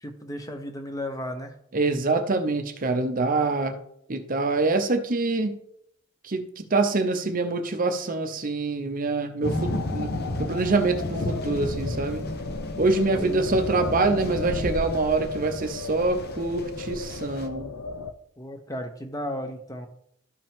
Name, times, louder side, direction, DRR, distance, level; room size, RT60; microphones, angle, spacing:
voice 1, 0.0-1.5 13.1-13.6 18.4-19.9, left 1 dB, 15° left, 0.9 m, -34 dB
voice 2, 1.7-3.8 4.1-5.6 6.2-12.3 12.8-17.7, right 3 dB, 40° right, 0.7 m, -25 dB
sound 1, 9.4-18.1, left 4 dB, 85° left, 0.6 m, -37 dB
sound 2, 9.4-17.5, left 1 dB, 45° left, 0.9 m, -33 dB
12.5 x 5.2 x 3.6 m
head